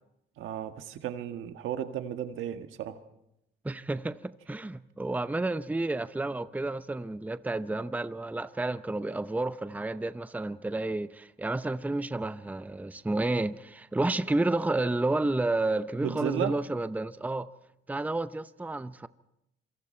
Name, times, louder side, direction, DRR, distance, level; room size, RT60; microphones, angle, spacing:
voice 1, 0.4-3.0 16.0-16.6, right 10 dB, 85° right, 1.6 m, -34 dB
voice 2, 3.6-17.5 17.9-19.1, right 2 dB, 10° right, 0.7 m, -31 dB
26.5 x 24.5 x 4.4 m
cardioid pair, 90°, 20 cm